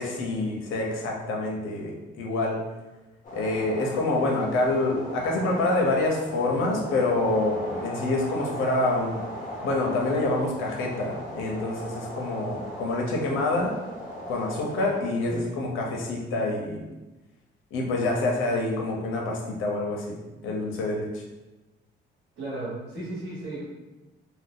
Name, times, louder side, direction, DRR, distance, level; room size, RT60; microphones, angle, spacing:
voice 1, 0.0-2.6 3.3-9.2 9.6-13.8 14.3-16.8 17.7-20.2 20.4-21.2, left 2 dB, 90° left, -1 dB, 0.7 m, -27 dB
sound 1, 3.2-15.0, equal, 40° left, 0.9 m, -38 dB
voice 2, 22.4-23.6, right 2 dB, 85° right, -10 dB, 1.2 m, -35 dB
2.6 x 2.2 x 3.6 m, 1.1 s
cardioid pair, 90°, 20 cm